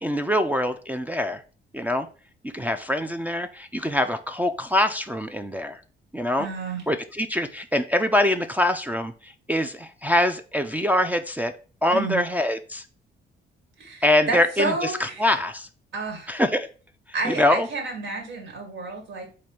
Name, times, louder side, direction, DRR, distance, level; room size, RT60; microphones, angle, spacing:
voice 1, 0.0-1.4 1.7-2.1 2.4-5.8 6.1-6.5 6.9-11.5 11.8-12.8 14.0-15.7 16.3-16.7 17.2-17.7, left 1 dB, 10° right, 5 dB, 0.3 m, -24 dB
voice 2, 6.4-6.8 11.9-12.2 13.8-15.2 15.9-16.3 17.1-19.4, right 3 dB, 70° right, 2 dB, 1.8 m, -30 dB
4.2 x 2.5 x 4.7 m, 0.37 s
cardioid pair, 90°, 20 cm